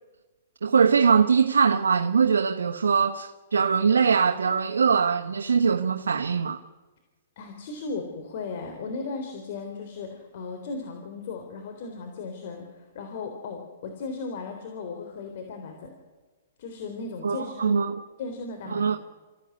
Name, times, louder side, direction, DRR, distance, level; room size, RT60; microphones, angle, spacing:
voice 1, 0.6-6.6 17.2-18.0 18.7-19.0, right 6 dB, 90° right, 1.1 m, -22 dB
voice 2, 7.4-15.9 16.6-17.8 18.2-19.0, left 4 dB, 55° left, 3.7 m, -36 dB
26.0 x 15.5 x 9.7 m
hypercardioid pair, 140°, 0 cm